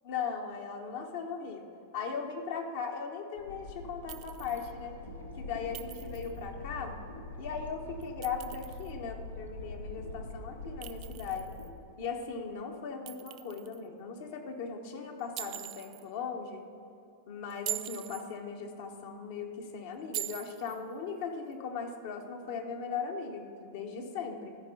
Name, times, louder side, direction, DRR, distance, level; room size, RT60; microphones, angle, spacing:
voice 1, 0.0-1.7 1.9-5.0 5.3-7.0 7.4-11.5 12.0-16.6 17.3-24.5, left 5 dB, 50° left, 4 dB, 1.0 m, -38 dB
sound 1, 3.4-11.7, left 2 dB, 80° left, 1.0 m, -44 dB
Chink clink, 4.1-4.7 5.7-6.4 8.0-8.9 10.8-11.7 13.1-13.8 15.4-16.0 17.5-18.3 20.1-20.8, right 15 dB, 40° right, 0.4 m, -42 dB
13.5 x 5.2 x 5.7 m, 2.8 s
figure-of-eight pair, 90°, 0 cm